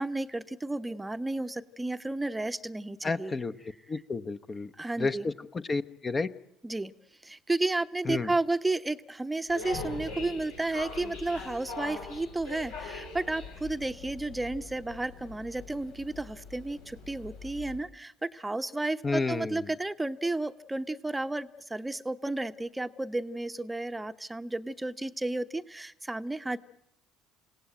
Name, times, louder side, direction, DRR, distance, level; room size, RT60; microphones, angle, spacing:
voice 1, 0.0-3.4 4.8-5.3 6.6-6.9 7.2-26.6, right 2 dB, 10° right, 11 dB, 0.9 m, -32 dB
voice 2, 3.0-3.6 3.9-4.7 5.0-6.3 8.0-8.3 19.0-19.6, left 3 dB, 30° left, 11 dB, 1.0 m, -31 dB
sound 1, 9.5-17.8, left 3 dB, 80° left, 4.6 m, -42 dB
28.0 x 17.0 x 9.1 m, 0.80 s
figure-of-eight pair, 55°, 0 cm